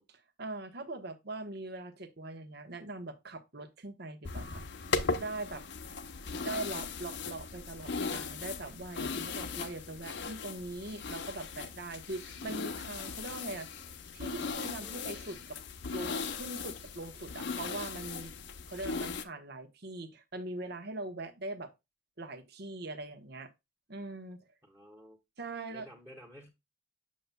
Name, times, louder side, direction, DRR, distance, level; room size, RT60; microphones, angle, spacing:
voice 1, 0.1-4.6 4.9-5.6 6.4-13.7 14.1-15.6 15.9-18.3 18.7-21.7 22.2-23.5 23.9-24.4 25.4-25.9, right 2 dB, 55° right, 1.1 m, -42 dB
sound 1, 4.2-19.2, left 4 dB, 60° left, 0.8 m, -38 dB
voice 2, 24.6-25.2 25.7-26.5, equal, 10° right, 1.3 m, -52 dB
7.6 x 6.8 x 2.2 m
head